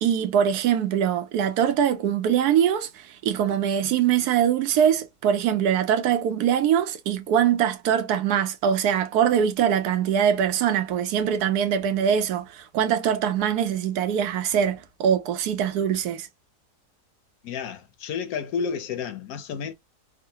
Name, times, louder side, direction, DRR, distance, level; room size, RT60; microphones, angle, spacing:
voice 1, 0.0-16.3, right 9 dB, 90° right, 1.2 m, -23 dB
voice 2, 17.4-19.7, left 6 dB, 75° left, 1.1 m, -31 dB
3.7 x 2.1 x 2.7 m
omnidirectional pair, 1.6 m